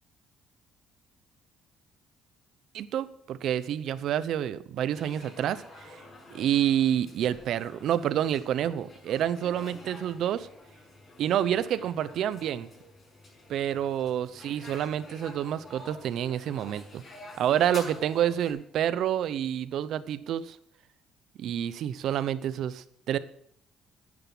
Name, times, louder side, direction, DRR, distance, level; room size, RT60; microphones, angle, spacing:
voice 1, 2.7-6.0 6.3-10.5 11.2-12.7 13.5-17.0 17.4-20.6 21.4-23.2, right 10 dB, 70° right, 16 dB, 0.7 m, -28 dB
sound 1, 4.9-18.5, left 2 dB, 35° left, 6.8 m, -49 dB
10.5 x 10.0 x 6.1 m, 0.69 s
cardioid pair, 90°, 0 cm